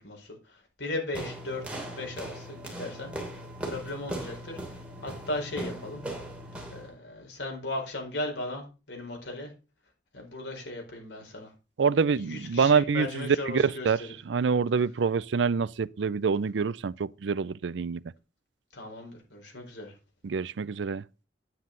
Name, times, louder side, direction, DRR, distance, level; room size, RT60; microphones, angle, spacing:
voice 1, 0.0-1.6 1.9-3.1 3.6-6.0 6.7-9.5 10.1-11.5 12.1-14.1 18.7-19.9, left 2 dB, 80° left, 4.5 m, -37 dB
sound 1, 1.1-6.9, right 1 dB, 5° right, 2.9 m, -39 dB
voice 2, 11.8-18.0 20.2-21.0, right 5 dB, 85° right, 0.5 m, -26 dB
9.6 x 9.2 x 3.9 m
head